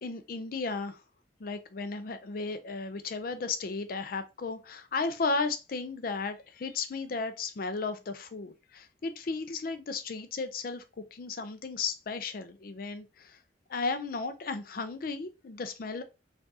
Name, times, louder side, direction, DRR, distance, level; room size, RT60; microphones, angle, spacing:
voice 1, 0.0-1.0 1.4-10.8 11.1-13.4 13.7-16.0, left 4 dB, 50° left, 0.4 m, -34 dB
4.6 x 2.4 x 2.7 m
head